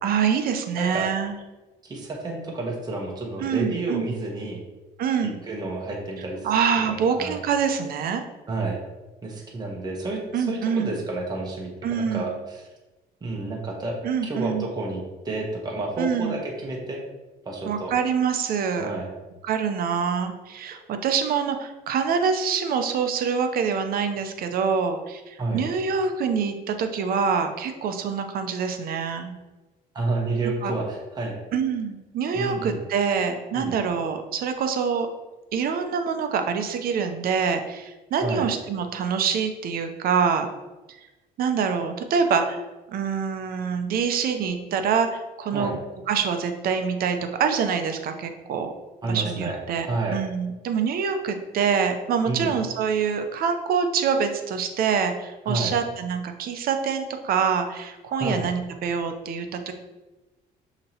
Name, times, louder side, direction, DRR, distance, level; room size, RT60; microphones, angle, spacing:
voice 1, 0.0-1.3 3.4-4.1 5.0-5.4 6.4-8.2 10.3-10.9 11.8-12.3 14.0-14.7 16.0-16.4 17.6-18.9 19.4-29.3 30.6-30.7 31.5-35.1 35.5-40.5 41.4-42.6 42.9-45.8 46.1-48.7 49.1-49.9 50.1-59.7, right 6 dB, 60° right, 6 dB, 0.6 m, -25 dB
voice 2, 0.7-1.1 1.8-4.6 5.4-6.5 6.8-7.4 8.5-8.8 9.2-12.7 13.2-17.0 17.4-17.9 18.8-19.1 25.4-25.6 29.9-31.4 32.3-32.8 33.5-33.7 38.2-38.5 45.5-45.8 49.0-49.6 49.8-50.2 52.2-52.5 55.5-55.7 58.2-58.4, right 2 dB, 25° right, -1 dB, 0.9 m, -30 dB
6.4 x 2.9 x 2.8 m, 1.1 s
cardioid pair, 110°, 17 cm